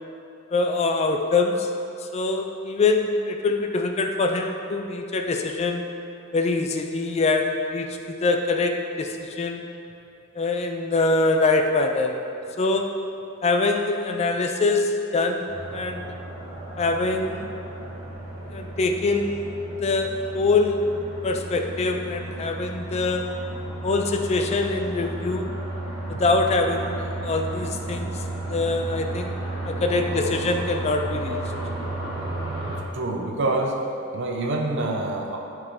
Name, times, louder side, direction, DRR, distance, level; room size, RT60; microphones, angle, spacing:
voice 1, 0.5-1.7 2.1-5.8 6.3-9.6 10.4-12.2 12.6-13.0 13.4-16.1 16.8-17.5 18.5-19.5 19.8-20.8 21.2-23.3 23.8-25.5 26.1-29.4 29.6-31.4, left 3 dB, 30° left, 4 dB, 0.3 m, -24 dB
sound 1, 15.5-32.8, right 2 dB, 20° right, 1.2 m, -33 dB
voice 2, 29.7-30.1 32.6-33.8 34.1-35.4, right 2 dB, 60° right, 1 dB, 0.7 m, -27 dB
10.0 x 4.8 x 2.7 m, 2.8 s
head